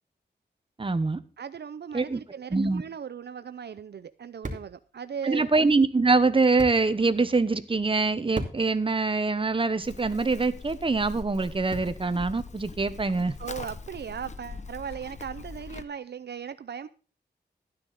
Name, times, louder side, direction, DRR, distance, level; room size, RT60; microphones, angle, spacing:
voice 1, 0.8-1.2 1.9-2.2 2.5-2.8 5.2-13.3, right 3 dB, 30° right, 1.0 m, -24 dB
voice 2, 1.4-5.5 13.4-16.9, right 7 dB, 70° right, 0.6 m, -38 dB
sound 1, 3.2-12.2, right 1 dB, 45° right, 2.4 m, -44 dB
Livestock farm animals working animals, 9.8-15.8, left 3 dB, 40° left, 1.0 m, -42 dB
13.0 x 9.7 x 4.1 m
wide cardioid pair, 85°, 18 cm